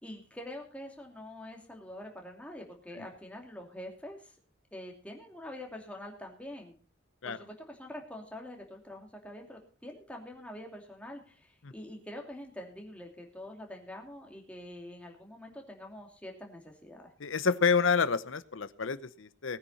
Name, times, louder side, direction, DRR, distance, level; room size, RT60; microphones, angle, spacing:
voice 1, 0.0-4.4 4.7-6.7 7.2-17.1, left 1 dB, 5° left, 1 dB, 2.7 m, -45 dB
voice 2, 17.2-19.6, left 5 dB, 75° left, 15 dB, 0.8 m, -28 dB
19.5 x 9.6 x 4.2 m, 0.38 s
head